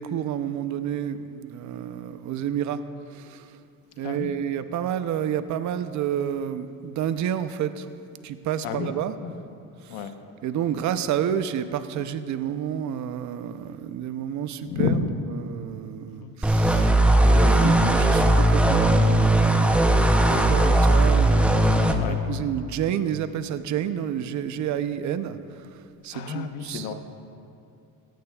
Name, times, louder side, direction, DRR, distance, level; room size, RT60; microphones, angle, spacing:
voice 1, 0.0-2.8 3.1-3.5 4.0-7.9 8.2-9.2 9.9-10.1 10.4-14.9 15.2-16.9 17.2-19.9 20.2-25.7 26.0-26.9, right 9 dB, 55° right, 11 dB, 0.7 m, -30 dB
voice 2, 4.0-4.3 8.6-8.9 9.2-9.5 9.9-10.1 14.6-15.2 16.2-16.3 17.6-17.9 22.0-22.2 26.1-26.9, left 5 dB, 90° left, 7 dB, 1.0 m, -30 dB
sound 1, 16.4-21.9, right 1 dB, 5° right, 0.6 m, -18 dB
16.5 x 15.5 x 2.3 m, 2.5 s
cardioid pair, 135°, 35 cm